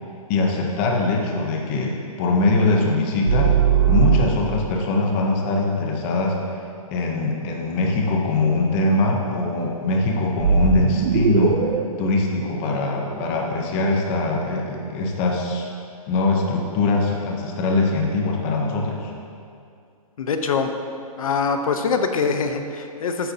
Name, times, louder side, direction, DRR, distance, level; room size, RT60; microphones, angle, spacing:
voice 1, 0.3-3.6 3.9-6.4 6.9-11.6 12.0-15.7 16.1-19.1, left 2 dB, 20° left, 0 dB, 0.7 m, -22 dB
sound 1, 3.3-4.8 10.4-13.5, right 8 dB, 75° right, 0.7 m, -20 dB
voice 2, 20.2-20.7 21.2-23.3, left 5 dB, 65° left, 6 dB, 0.8 m, -23 dB
13.5 x 8.3 x 2.8 m, 2.4 s
hypercardioid pair, 170°, 19 cm